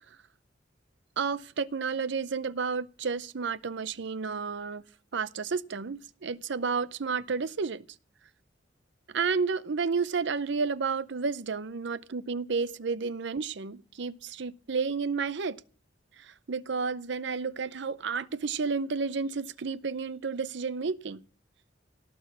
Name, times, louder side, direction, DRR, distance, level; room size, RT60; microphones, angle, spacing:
voice 1, 1.2-4.8 5.1-7.8 9.1-15.6 16.2-21.2, right 5 dB, 65° right, 0.6 m, -31 dB
18.0 x 6.2 x 8.5 m
head